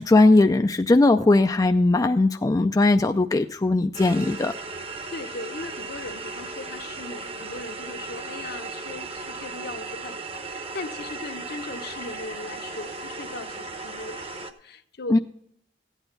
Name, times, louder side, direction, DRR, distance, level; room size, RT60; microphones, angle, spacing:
voice 1, 0.0-4.5 15.1-15.2, left 2 dB, 20° left, 7 dB, 0.4 m, -19 dB
sound 1, 3.9-14.5, right 3 dB, 35° right, 0.9 m, -36 dB
voice 2, 5.1-15.2, left 3 dB, 60° left, 8 dB, 0.9 m, -38 dB
14.5 x 9.2 x 3.9 m, 0.72 s
head